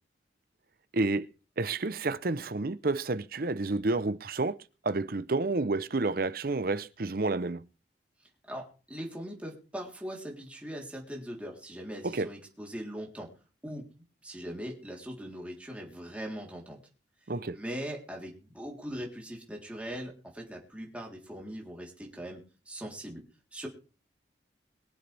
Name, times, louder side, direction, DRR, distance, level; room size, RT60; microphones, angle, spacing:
voice 1, 0.9-1.3 1.6-4.6 4.8-7.6 12.0-12.3 17.3-17.6, right 3 dB, 50° right, 0.7 m, -30 dB
voice 2, 8.5-13.3 13.6-13.9 14.2-16.8 17.5-23.2 23.5-23.7, equal, 5° right, 3.5 m, -40 dB
23.5 x 7.9 x 3.4 m
head